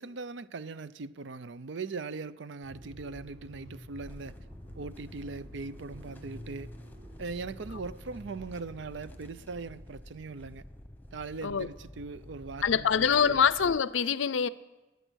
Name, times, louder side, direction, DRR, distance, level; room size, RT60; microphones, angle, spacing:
voice 1, 0.0-4.3 4.8-6.7 7.2-10.6 11.1-13.5, right 4 dB, 70° right, 0.5 m, -40 dB
Motor vehicle (road), 2.6-9.3, equal, 50° right, 6.6 m, -49 dB
sound 1, 4.0-13.8, left 1 dB, 10° left, 1.0 m, -50 dB
voice 2, 12.6-14.5, left 7 dB, 80° left, 0.5 m, -25 dB
21.5 x 9.1 x 6.3 m
head